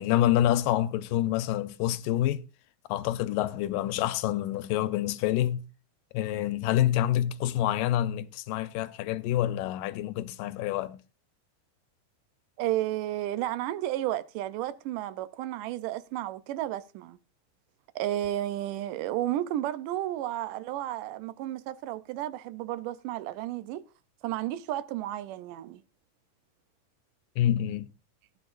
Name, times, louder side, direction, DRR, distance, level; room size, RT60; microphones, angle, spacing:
voice 1, 0.0-2.4 2.9-5.6 6.1-11.0 27.4-27.9, left 12 dB, 85° left, 2.4 m, -27 dB
voice 2, 12.6-17.2 18.0-23.8 24.2-25.8, right 13 dB, 80° right, 2.2 m, -32 dB
16.0 x 9.8 x 2.5 m
omnidirectional pair, 3.8 m